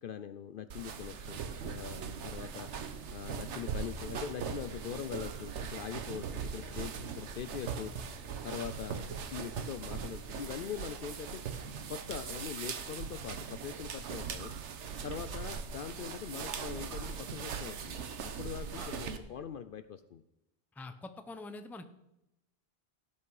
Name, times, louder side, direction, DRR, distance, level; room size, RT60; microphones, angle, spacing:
voice 1, 0.0-2.7 3.1-7.9 8.4-9.1 9.3-11.4 11.9-14.5 15.0-18.1 18.4-20.2, left 8 dB, 60° left, 11 dB, 0.6 m, -42 dB
sound 1, 0.7-19.2, right 6 dB, 90° right, 1.2 m, -40 dB
voice 2, 18.7-19.1 20.7-21.8, left 2 dB, ahead, 9 dB, 0.5 m, -46 dB
17.0 x 5.9 x 4.8 m, 0.88 s
omnidirectional pair, 1.2 m